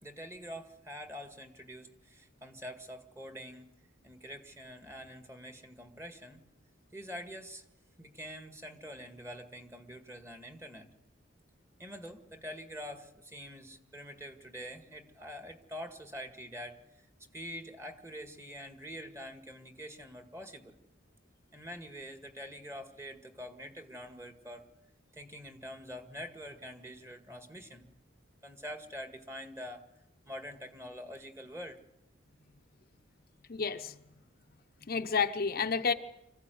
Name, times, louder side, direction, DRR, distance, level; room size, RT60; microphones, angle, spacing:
voice 1, 0.0-3.7 4.0-6.4 6.9-7.7 8.0-10.9 11.8-17.1 17.3-20.8 21.5-24.6 25.1-28.0 28.4-29.9 30.3-31.8, equal, 15° right, 6 dB, 1.9 m, -45 dB
voice 2, 33.5-33.9 34.9-35.9, left 5 dB, 50° left, 7 dB, 0.8 m, -30 dB
25.5 x 15.5 x 9.3 m, 0.91 s
head